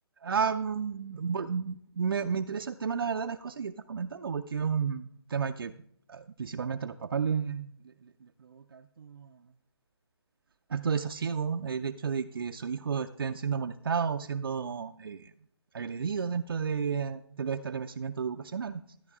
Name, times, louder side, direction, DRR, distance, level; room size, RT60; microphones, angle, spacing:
voice 1, 0.2-5.7 6.1-7.7 8.4-9.3 10.7-15.3 15.7-18.8, right 6 dB, 60° right, 7 dB, 0.5 m, -32 dB
13.5 x 10.0 x 3.6 m, 0.68 s
hypercardioid pair, 160°, 14 cm